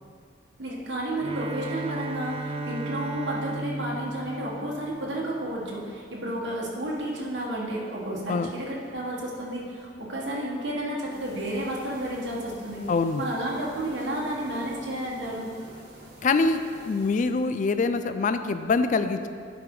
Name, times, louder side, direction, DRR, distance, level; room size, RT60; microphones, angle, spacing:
voice 1, 0.6-12.8 13.2-15.5, right 1 dB, 85° right, -4 dB, 1.4 m, -31 dB
Bowed string instrument, 1.1-5.5, right 2 dB, 35° right, 0.3 m, -35 dB
sound 1, 11.1-17.3, right 1 dB, 60° right, 1.8 m, -48 dB
voice 2, 12.9-13.2 16.2-19.3, left 4 dB, 45° left, 10 dB, 0.4 m, -24 dB
11.0 x 4.9 x 3.8 m, 2.2 s
head